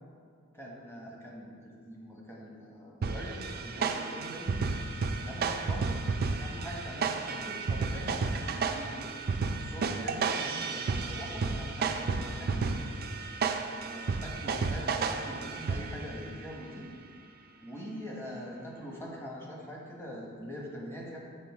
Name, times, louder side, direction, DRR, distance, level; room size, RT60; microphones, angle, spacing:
voice 1, 0.6-4.6 5.2-9.1 9.6-12.7 13.8-16.9 17.6-21.2, equal, 10° left, -3 dB, 1.1 m, -43 dB
sound 1, 3.0-16.2, right 4 dB, 45° right, 0.4 m, -32 dB
7.8 x 3.8 x 4.8 m, 2.2 s
head